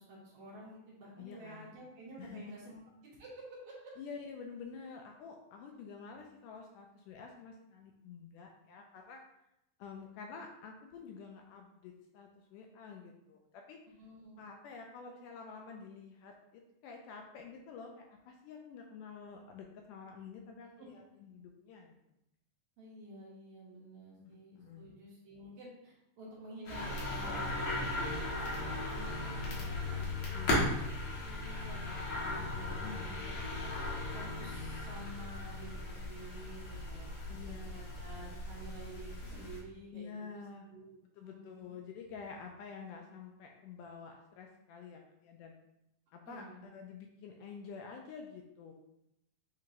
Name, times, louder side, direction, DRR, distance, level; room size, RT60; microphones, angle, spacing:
voice 1, 0.0-3.9 14.0-14.5 20.8-20.9 22.8-30.8 31.2-33.7 34.1-37.1 37.5-40.9 41.2-41.8 46.3-46.7, right 1 dB, 70° right, -5 dB, 1.5 m, -51 dB
voice 2, 1.2-1.7 2.2-2.7 4.0-9.2 9.8-13.8 14.4-22.0 24.2-24.9 30.3-30.7 32.8-33.2 37.3-37.8 39.9-40.7 41.2-45.5 46.1-46.5 46.7-48.7, left 5 dB, 80° left, 2 dB, 1.9 m, -49 dB
sound 1, 26.6-39.6, left 2 dB, 60° left, 1.5 m, -37 dB
7.3 x 2.9 x 2.5 m, 0.83 s
omnidirectional pair, 4.0 m